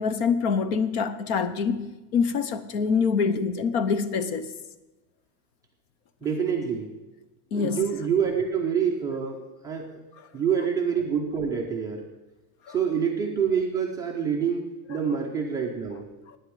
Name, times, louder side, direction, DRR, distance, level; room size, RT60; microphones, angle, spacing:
voice 1, 0.0-4.5 7.5-7.9 12.7-12.8 14.9-15.0, left 5 dB, 50° left, 13 dB, 0.9 m, -25 dB
voice 2, 6.2-6.9 7.5-10.0 10.3-12.0 12.7-14.6 14.9-16.1, right 7 dB, 10° right, -1 dB, 0.6 m, -26 dB
9.6 x 8.1 x 8.5 m, 1.1 s
supercardioid pair, 180°, 42 cm